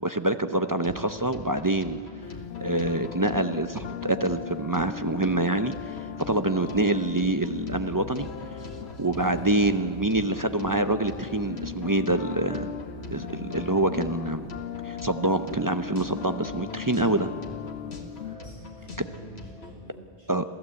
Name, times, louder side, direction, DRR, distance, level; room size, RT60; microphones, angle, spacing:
voice 1, 0.0-2.0 2.6-5.7 6.3-8.3 9.0-12.7 13.1-14.5 14.8-17.3 20.3-20.4, right 2 dB, 25° right, 9 dB, 0.5 m, -26 dB
sound 1, 0.6-19.7, left 2 dB, 65° left, 2.2 m, -44 dB
sound 2, 2.2-18.4, left 9 dB, 90° left, 1.1 m, -38 dB
Musical instrument, 7.5-14.4, right 1 dB, 45° left, 7.6 m, -48 dB
voice 2, 9.1-9.6 18.4-20.3, right 2 dB, 60° right, -4 dB, 8.5 m, -46 dB
27.0 x 16.0 x 8.3 m, 2.5 s
omnidirectional pair, 1.2 m